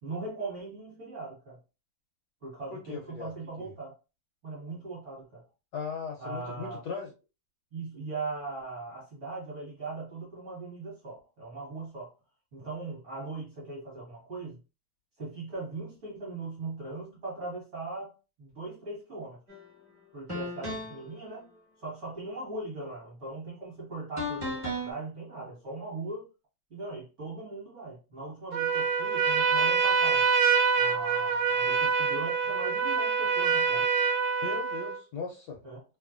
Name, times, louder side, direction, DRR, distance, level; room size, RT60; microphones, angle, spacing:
voice 1, 0.0-1.6 2.4-3.9 4.4-5.4 6.2-6.8 7.7-12.1 12.5-14.6 15.2-19.4 20.1-21.5 21.8-26.3 26.7-30.3 30.8-33.9 35.6-35.8, right 3 dB, 45° right, 1.2 m, -39 dB
voice 2, 2.7-3.3 3.6-3.7 5.7-7.1 34.4-35.6, left 5 dB, 75° left, 1.0 m, -38 dB
sound 1, 19.5-19.7 20.3-21.1 24.2-24.9, left 1 dB, 20° right, 0.9 m, -34 dB
Trumpet, 28.5-35.0, right 5 dB, 80° right, 1.3 m, -25 dB
3.0 x 2.3 x 2.4 m
omnidirectional pair, 2.1 m